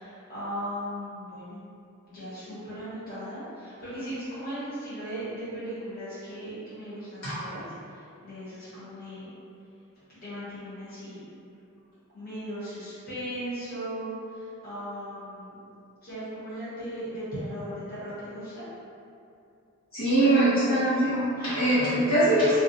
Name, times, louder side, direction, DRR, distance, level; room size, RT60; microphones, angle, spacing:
voice 1, 0.0-1.6 2.1-7.6 7.9-9.3 10.1-11.2 12.1-15.6 16.0-18.7 20.2-20.6 21.4-21.7, equal, 40° left, -13 dB, 1.1 m, -37 dB
voice 2, 19.9-22.6, right 1 dB, 75° left, -13 dB, 1.0 m, -22 dB
2.4 x 2.2 x 2.7 m, 2.6 s
head